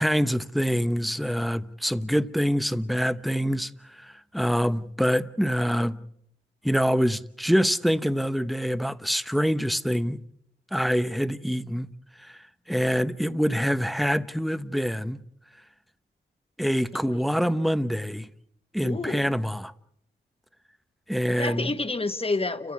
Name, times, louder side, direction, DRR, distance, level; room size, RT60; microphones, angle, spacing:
voice 1, 0.0-6.0 6.6-10.2 10.7-11.9 12.3-12.4 12.7-15.2 16.6-18.3 18.7-19.7 21.1-21.7, equal, ahead, 1.0 m, -25 dB
voice 2, 16.9-17.2 18.8-19.3 21.3-22.7, left 3 dB, 30° left, 1.6 m, -29 dB
30.0 x 14.5 x 8.6 m
cardioid pair, 60°, 20 cm